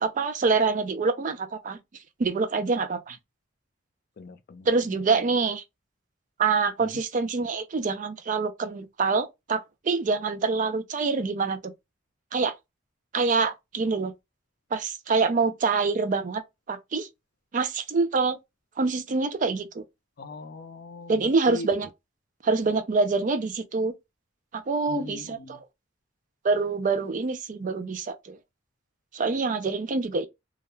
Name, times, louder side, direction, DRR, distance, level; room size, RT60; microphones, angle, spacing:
voice 1, 0.0-1.8 2.2-3.2 4.7-5.6 6.4-11.6 12.3-12.5 13.1-14.1 14.7-16.4 16.7-17.1 17.5-18.4 18.8-19.8 21.1-21.9 22.4-23.9 24.5-25.6 26.4-28.4 29.1-30.3, right 4 dB, 40° right, 0.4 m, -25 dB
voice 2, 4.2-5.2 6.8-7.0 20.2-21.7 24.9-25.6, left 3 dB, 50° left, 0.4 m, -41 dB
2.3 x 2.1 x 3.0 m
head